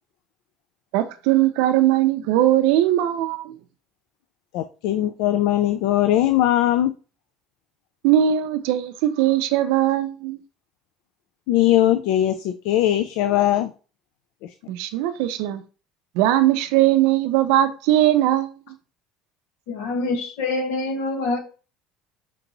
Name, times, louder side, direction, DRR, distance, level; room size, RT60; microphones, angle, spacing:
voice 1, 0.9-3.5 8.0-10.4 14.7-15.6 16.2-18.5, right 13 dB, 70° right, 0.5 m, -20 dB
voice 2, 4.5-6.9 11.5-13.7 14.4-14.5, left 13 dB, 65° left, 0.3 m, -20 dB
voice 3, 19.7-21.4, left 3 dB, 80° left, 1.1 m, -25 dB
4.5 x 3.0 x 3.9 m
cardioid pair, 180°, 0 cm